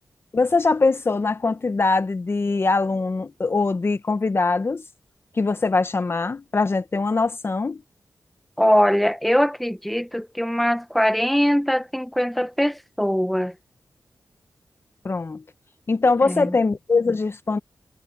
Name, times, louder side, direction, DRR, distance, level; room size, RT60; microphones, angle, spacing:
voice 1, 0.3-4.8 5.3-7.8 15.0-15.4 15.9-17.6, left 3 dB, 40° left, 0.8 m, -22 dB
voice 2, 8.6-13.5 16.2-16.5, equal, ahead, 1.0 m, -22 dB
wide cardioid pair, 95°, 6 cm